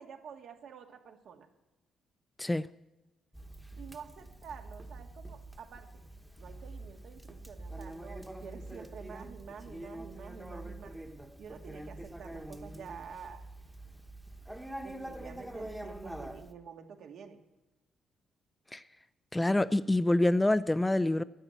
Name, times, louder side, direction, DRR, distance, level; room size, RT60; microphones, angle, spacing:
voice 1, 0.0-1.5 3.7-6.0 6.4-10.9 11.4-13.4 14.8-17.4, right 6 dB, 70° right, 1.7 m, -49 dB
Conversation, 3.3-16.5, right 1 dB, 5° right, 1.1 m, -45 dB
voice 2, 19.3-21.2, left 1 dB, 10° left, 0.4 m, -26 dB
11.5 x 9.9 x 8.1 m
cardioid pair, 90°, 0 cm